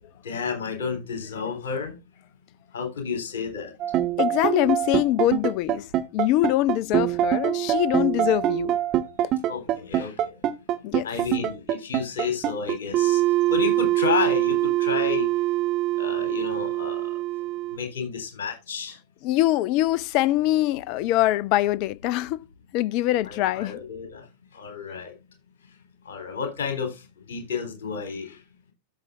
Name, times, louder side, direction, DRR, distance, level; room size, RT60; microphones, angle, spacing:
voice 1, 0.2-1.9 2.7-3.7 9.5-10.3 11.0-13.2 13.5-15.3 16.0-17.1 17.7-19.0 23.2-24.2 24.5-25.1 26.1-28.4, left 6 dB, 60° left, 3.7 m, -31 dB
sound 1, 3.8-17.8, right 13 dB, 35° right, 1.2 m, -24 dB
voice 2, 4.2-5.9 6.1-8.8 9.2-9.3 10.8-11.1 19.2-22.4 22.7-23.8, left 15 dB, 45° left, 0.4 m, -23 dB
13.5 x 6.8 x 2.5 m
figure-of-eight pair, 90°, 0 cm